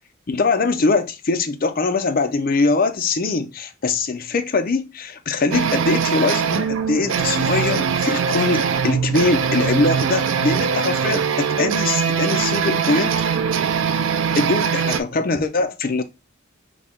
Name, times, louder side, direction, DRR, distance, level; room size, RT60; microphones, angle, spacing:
voice 1, 0.3-13.2 14.4-16.0, left 3 dB, 45° left, 0.5 m, -22 dB
sound 1, 5.5-15.0, right 6 dB, 70° right, 0.4 m, -21 dB
3.8 x 2.8 x 3.4 m
head